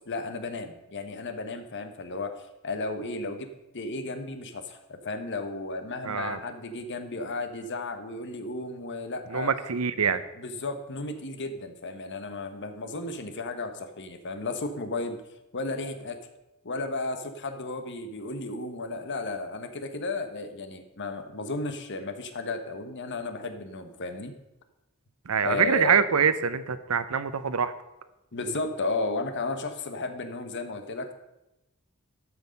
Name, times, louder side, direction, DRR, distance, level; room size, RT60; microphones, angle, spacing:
voice 1, 0.1-3.5 3.7-9.5 10.0-15.2 15.5-16.2 16.6-24.3 25.4-26.1 28.3-31.1, left 3 dB, 55° left, 8 dB, 1.1 m, -34 dB
voice 2, 6.0-6.4 9.3-10.2 25.3-27.7, right 6 dB, 90° right, 13 dB, 0.7 m, -25 dB
12.5 x 6.3 x 5.2 m, 0.93 s
head